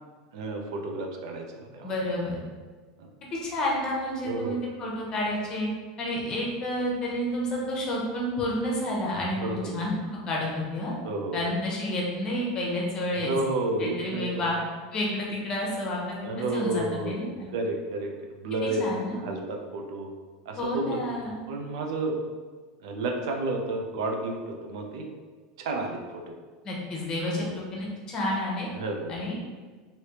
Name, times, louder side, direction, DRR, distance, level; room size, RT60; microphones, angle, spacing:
voice 1, 0.3-1.9 3.0-3.1 4.2-4.6 9.4-9.8 11.0-11.5 13.2-14.5 16.2-17.3 17.5-18.1 18.4-20.1 20.5-21.0 21.5-22.2 22.8-25.1 25.6-26.2 27.4-27.5 28.8-29.1, right 2 dB, 75° right, 2 dB, 0.5 m, -31 dB
voice 2, 1.8-2.4 3.3-5.7 6.0-9.9 10.3-10.9 11.3-13.3 13.8-14.6 14.9-17.5 18.6-19.2 20.6-21.4 26.6-28.7 29.1-29.4, left 1 dB, 25° left, -3 dB, 0.8 m, -30 dB
3.2 x 2.7 x 2.9 m, 1.4 s
supercardioid pair, 150°, 3 cm